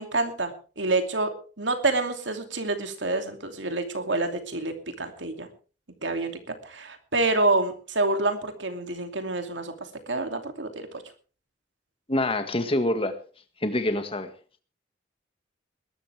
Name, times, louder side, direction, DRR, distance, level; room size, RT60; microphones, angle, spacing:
voice 1, 0.0-5.5 6.0-6.3 6.6-9.7 10.1-10.9, right 2 dB, 85° right, 6 dB, 2.7 m, -27 dB
voice 2, 12.1-13.1 13.6-14.3, left 1 dB, 30° left, 8 dB, 1.8 m, -26 dB
21.0 x 12.5 x 3.5 m, 0.39 s
head